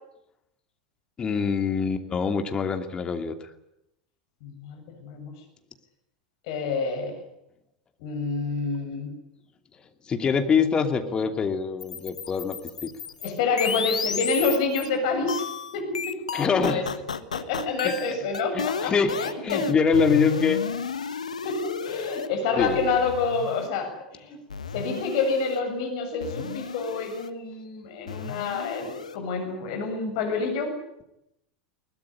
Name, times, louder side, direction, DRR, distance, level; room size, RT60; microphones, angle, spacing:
voice 1, 1.2-3.4 10.1-12.9 16.3-16.9 17.8-17.9 18.5-20.6 22.6-22.8, left 5 dB, 25° left, 7 dB, 2.8 m, -24 dB
voice 2, 4.4-5.3 6.5-7.2 8.0-9.1 13.2-15.5 15.7-16.2 16.5-16.8 17.3-19.7 21.4-24.4 24.7-30.8, left 4 dB, 55° left, 6 dB, 7.4 m, -28 dB
sound 1, 11.8-14.9 15.3-22.3 22.6-23.7 24.5-25.6 26.2-27.3 28.1-29.2, left 6 dB, 75° left, 1.3 m, -33 dB
22.0 x 19.5 x 10.0 m, 0.85 s
figure-of-eight pair, 85°, 4 cm